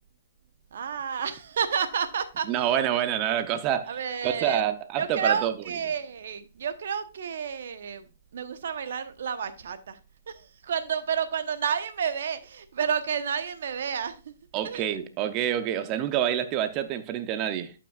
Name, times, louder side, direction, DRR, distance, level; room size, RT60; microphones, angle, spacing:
voice 1, 0.7-2.7 3.1-3.4 3.9-4.6 5.0-10.0 10.3-14.3 14.6-14.9, right 7 dB, 70° right, 1.0 m, -30 dB
voice 2, 2.5-4.0 4.2-5.5 14.5-17.7, right 10 dB, 30° right, 0.7 m, -27 dB
11.5 x 5.9 x 2.4 m
hypercardioid pair, 140°, 0 cm